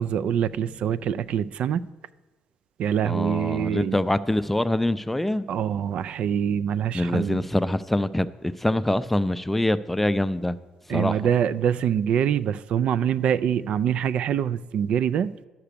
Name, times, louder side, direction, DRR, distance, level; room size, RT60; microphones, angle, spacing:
voice 1, 0.0-1.9 2.8-4.0 5.5-7.4 10.9-15.3, right 9 dB, 65° right, 15 dB, 0.3 m, -24 dB
voice 2, 3.0-5.5 6.9-10.6 10.9-11.3, left 1 dB, 10° left, 13 dB, 0.4 m, -24 dB
11.0 x 5.9 x 6.7 m, 1.2 s
cardioid pair, 90°, 2 cm